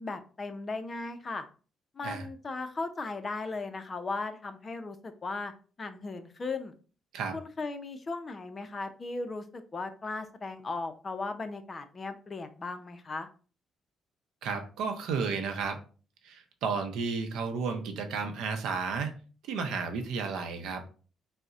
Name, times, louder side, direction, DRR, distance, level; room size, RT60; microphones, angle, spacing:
voice 1, 0.0-1.5 1.9-5.5 5.8-6.7 7.3-13.3, left 3 dB, 35° left, 8 dB, 0.4 m, -37 dB
voice 2, 14.4-15.8 16.2-19.1 19.4-20.8, right 5 dB, 85° right, 6 dB, 0.5 m, -32 dB
3.8 x 2.1 x 2.4 m, 0.38 s
cardioid pair, 90°, 0 cm